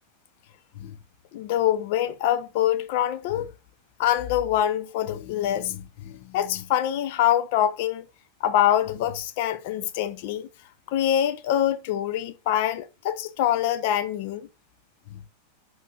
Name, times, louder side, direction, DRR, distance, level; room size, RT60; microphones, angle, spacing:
voice 1, 1.3-3.5 4.0-8.1 8.4-10.5 10.9-14.5 15.1-15.2, left 11 dB, 50° left, 0.8 m, -25 dB
11.0 x 6.4 x 2.9 m
figure-of-eight pair, 90°, 0 cm